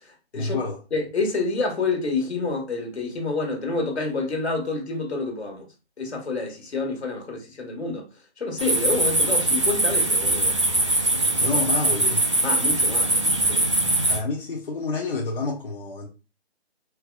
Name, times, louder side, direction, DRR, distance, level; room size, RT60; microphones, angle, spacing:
voice 1, 0.3-0.8 11.4-12.2 14.1-16.1, left 3 dB, 55° left, 0.8 m, -28 dB
voice 2, 0.9-5.7 6.0-8.0 8.4-10.5 11.4-11.6 12.4-13.7, left 3 dB, 75° left, 1.3 m, -28 dB
sound 1, 8.6-14.2, right 2 dB, 30° right, 0.4 m, -22 dB
4.6 x 2.2 x 2.2 m
figure-of-eight pair, 155°, 33 cm